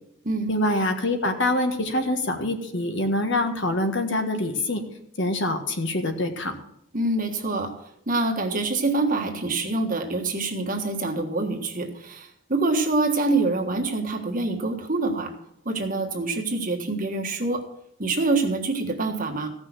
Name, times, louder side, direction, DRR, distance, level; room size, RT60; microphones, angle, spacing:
voice 1, 0.5-4.8 5.2-6.5, left 1 dB, 55° left, 5 dB, 1.5 m, -25 dB
voice 2, 6.9-7.7 8.1-15.3 15.6-17.7 18.0-19.5, right 2 dB, 40° right, 3 dB, 1.5 m, -25 dB
15.5 x 6.1 x 7.5 m, 0.76 s
head